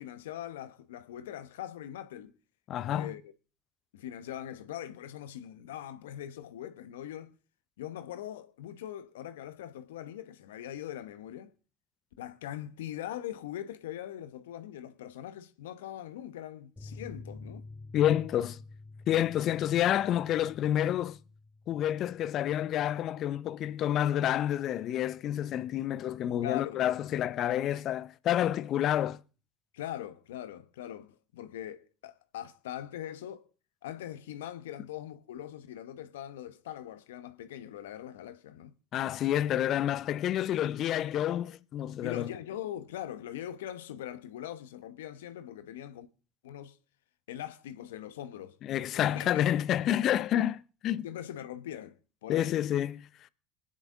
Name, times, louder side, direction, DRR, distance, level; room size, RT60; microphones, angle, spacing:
voice 1, 0.0-2.3 2.9-3.3 3.9-7.3 7.8-11.5 12.2-17.6 26.4-26.8 29.7-33.5 33.8-38.7 42.0-46.1 46.4-46.8 47.3-48.6 48.9-49.4 51.0-52.6, left 11 dB, 80° left, 0.9 m, -41 dB
voice 2, 2.7-3.1 17.9-18.6 19.1-21.2 21.7-29.2 38.9-42.3 48.6-51.0 52.3-53.1, left 11 dB, 55° left, 0.6 m, -29 dB
sound 1, 16.8-23.9 24.1-24.2 24.6-24.7, left 3 dB, 15° left, 2.4 m, -50 dB
25.0 x 9.8 x 3.7 m
hypercardioid pair, 70°, 0 cm